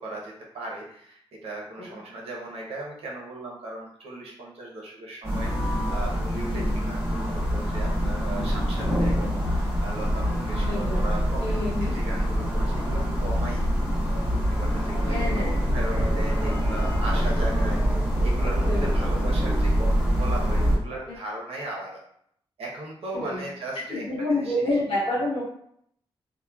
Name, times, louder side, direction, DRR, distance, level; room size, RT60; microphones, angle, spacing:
voice 1, 0.0-13.6 14.5-17.8 18.2-22.0 22.6-24.7, right 2 dB, 90° right, -3 dB, 0.8 m, -37 dB
sound 1, 5.2-20.8, equal, 10° right, 1.1 m, -25 dB
voice 2, 10.7-11.0 11.4-11.9 15.1-15.6 15.9-16.2 18.7-18.9 21.1-21.2 23.1-23.4 23.9-25.4, left 1 dB, 60° left, -5 dB, 1.0 m, -28 dB
3.0 x 2.1 x 2.3 m, 0.67 s
wide cardioid pair, 125°, 10 cm